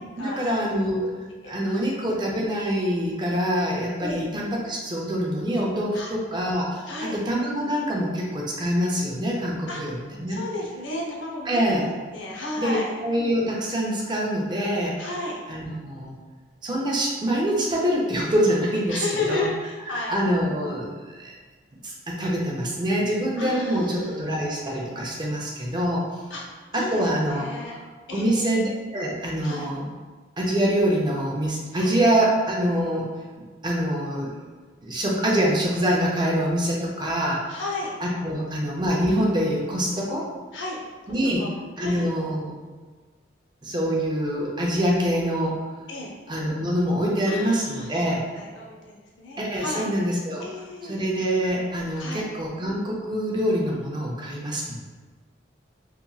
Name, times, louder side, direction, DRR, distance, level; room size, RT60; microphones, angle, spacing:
voice 1, 0.2-1.1 1.4-10.4 11.5-11.9 12.6-15.0 15.5-16.1 16.6-19.5 19.9-21.3 21.8-26.0 26.7-27.4 28.1-29.9 30.4-33.1 33.6-34.3 34.8-37.6 38.0-40.2 41.1-41.4 41.8-42.5 43.6-45.6 46.3-48.2 49.4-50.4 50.8-54.7, equal, 25° right, -3 dB, 0.4 m, -25 dB
voice 2, 6.9-7.2 9.7-9.8 10.3-12.9 15.0-15.4 18.9-20.2 23.4-24.2 26.3-26.4 26.7-27.8 28.1-28.5 29.4-29.7 31.7-31.9 37.5-38.0 38.5-38.8 40.5-40.8 41.4-41.5 41.8-42.1 45.9-46.1 47.3-48.1 48.3-49.9 50.4-51.0 52.0-52.2, left 2 dB, 85° left, -2 dB, 0.6 m, -33 dB
2.9 x 2.5 x 2.2 m, 1.4 s
head